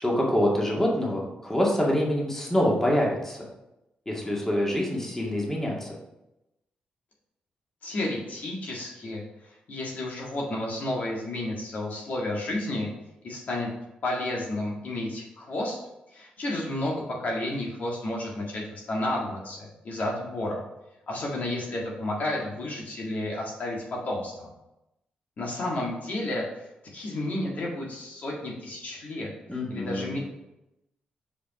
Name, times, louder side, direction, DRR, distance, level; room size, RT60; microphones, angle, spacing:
voice 1, 0.0-3.4 4.1-5.9 29.5-30.2, equal, 15° left, -3 dB, 2.0 m, -25 dB
voice 2, 7.8-9.2 9.7-12.9 13.2-13.7 14.0-15.8 16.1-20.6 21.1-24.5 25.4-26.4 26.9-29.3 29.7-30.2, left 1 dB, 60° left, -2 dB, 1.7 m, -31 dB
5.2 x 5.0 x 4.8 m, 0.91 s
cardioid pair, 75°, 3 cm